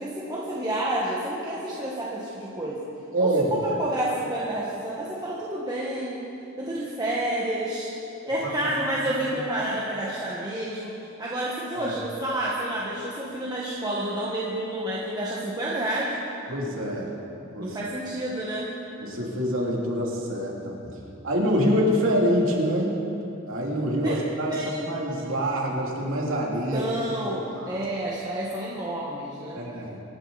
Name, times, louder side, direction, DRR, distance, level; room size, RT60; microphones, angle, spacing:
voice 1, 0.0-2.8 3.2-6.3 6.6-7.9 8.3-10.9 11.2-16.1 17.6-18.8 24.0-24.2 24.5-24.9 26.7-29.7, right 1 dB, 20° right, -6 dB, 1.5 m, -29 dB
voice 2, 3.1-3.4 8.4-8.7 11.7-11.9 16.5-17.8 19.0-20.9 21.2-23.0 23.4-26.9 27.5-27.8 29.5-30.0, equal, 65° right, -3 dB, 2.8 m, -26 dB
24.5 x 11.5 x 4.1 m, 2.9 s
head